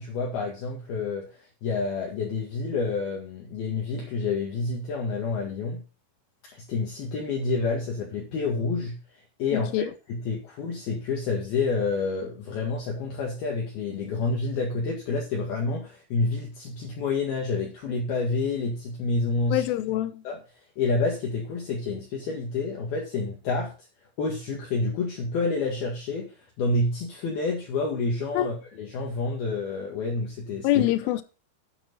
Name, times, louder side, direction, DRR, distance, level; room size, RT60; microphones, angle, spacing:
voice 1, 0.0-5.8 6.5-9.0 9.4-19.6 20.2-20.4 20.8-23.7 24.2-30.7, left 3 dB, 60° left, 3.3 m, -28 dB
voice 2, 9.5-9.9 19.5-20.2 28.3-28.5 30.6-31.2, left 13 dB, 80° left, 3.2 m, -25 dB
9.0 x 8.9 x 4.0 m
omnidirectional pair, 5.7 m